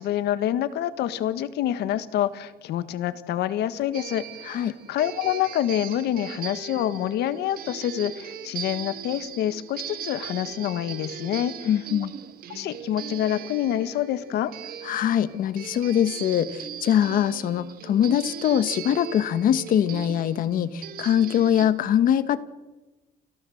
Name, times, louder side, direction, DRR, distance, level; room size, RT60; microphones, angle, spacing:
voice 1, 0.0-11.7 12.5-14.5, left 11 dB, 80° left, 13 dB, 1.6 m, -27 dB
sound 1, 3.9-21.7, right 9 dB, 60° right, 1.9 m, -39 dB
voice 2, 11.6-12.1 14.8-22.4, left 10 dB, 55° left, 14 dB, 1.3 m, -23 dB
29.5 x 16.5 x 7.9 m, 1.1 s
cardioid pair, 170°, 17 cm